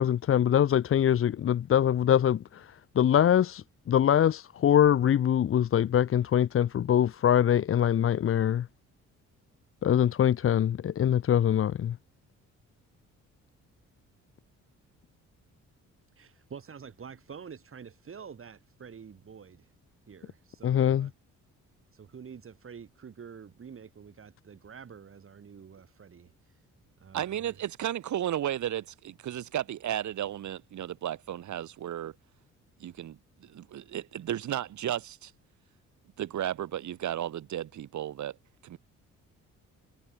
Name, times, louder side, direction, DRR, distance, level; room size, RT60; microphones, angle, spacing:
voice 1, 0.0-2.7 3.0-8.7 9.8-12.0 20.6-21.1, left 10 dB, 45° left, 0.8 m, -23 dB
voice 2, 16.2-19.7 20.1-21.1 21.9-26.3 27.0-27.5, right 6 dB, 45° right, 5.8 m, -47 dB
voice 3, 27.1-32.1 32.8-35.3 36.2-38.4 38.6-38.8, right 11 dB, 70° right, 5.2 m, -34 dB
cardioid pair, 90°, 30 cm